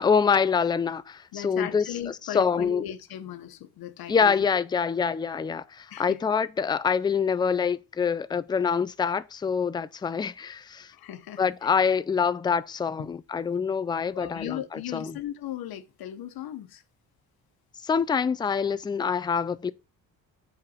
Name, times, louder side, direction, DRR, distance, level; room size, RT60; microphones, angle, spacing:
voice 1, 0.0-1.9 2.3-2.8 4.1-10.9 11.4-15.2 17.8-19.7, left 6 dB, 15° left, 0.3 m, -25 dB
voice 2, 1.3-4.5 5.9-6.2 10.9-11.4 13.0-13.1 14.1-16.8, left 11 dB, 85° left, 1.0 m, -37 dB
7.8 x 4.2 x 5.6 m
cardioid pair, 130°, 35 cm